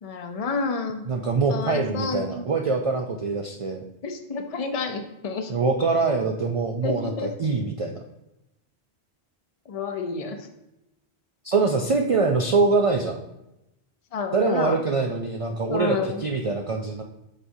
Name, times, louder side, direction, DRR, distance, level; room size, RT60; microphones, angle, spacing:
voice 1, 0.0-1.0 1.5-2.4 4.0-5.5 6.8-7.3 9.7-10.4 14.1-14.8 15.7-16.3, left 4 dB, 40° left, 5 dB, 0.6 m, -29 dB
voice 2, 1.1-3.8 5.5-8.0 11.4-13.2 14.3-17.0, right 4 dB, 50° right, 2 dB, 0.4 m, -24 dB
7.5 x 4.8 x 2.7 m, 0.90 s
omnidirectional pair, 1.1 m